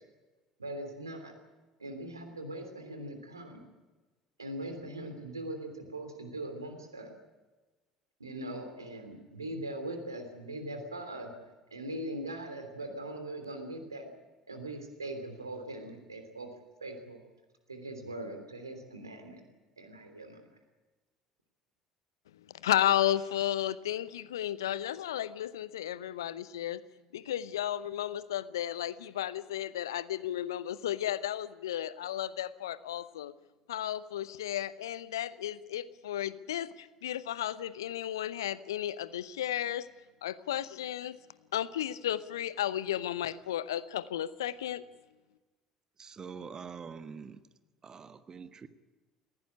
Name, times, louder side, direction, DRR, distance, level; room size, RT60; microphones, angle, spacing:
voice 1, 0.6-1.3 1.8-3.6 4.4-7.1 8.2-11.3 11.7-14.1 14.5-16.5 16.8-17.2 17.7-19.4 19.8-20.4, right 1 dB, 85° right, 6 dB, 3.0 m, -41 dB
voice 2, 22.6-26.8 27.1-33.3 33.7-39.9 40.2-41.2 41.5-44.8, left 11 dB, 75° left, 17 dB, 0.7 m, -33 dB
voice 3, 46.0-47.4 47.8-48.7, right 6 dB, 35° right, 11 dB, 1.4 m, -45 dB
19.5 x 16.5 x 9.9 m, 1.2 s
figure-of-eight pair, 60°, 2 cm